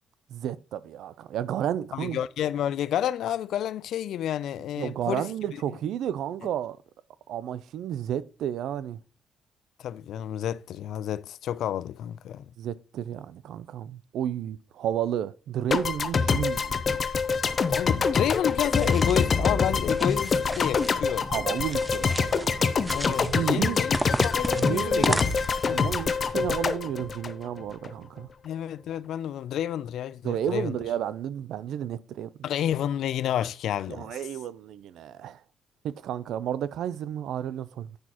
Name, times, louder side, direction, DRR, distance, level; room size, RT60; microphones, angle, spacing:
voice 1, 0.3-2.2 4.8-6.8 7.3-9.0 12.6-16.8 21.3-23.8 24.6-25.2 25.7-28.3 30.2-32.3 33.9-35.4 35.8-38.0, right 10 dB, 80° right, 0.4 m, -32 dB
voice 2, 1.9-5.3 9.8-12.4 17.7-21.3 22.9-25.2 25.7-25.9 28.4-30.7 32.4-34.2, left 10 dB, 75° left, 0.4 m, -30 dB
sound 1, 15.7-27.9, left 5 dB, 45° left, 0.7 m, -25 dB
sound 2, 18.6-19.3 19.8-20.9 21.6-22.5 22.8-23.4 23.9-25.7, right 1 dB, 10° right, 0.4 m, -33 dB
9.4 x 6.1 x 2.9 m
cardioid pair, 90°, 0 cm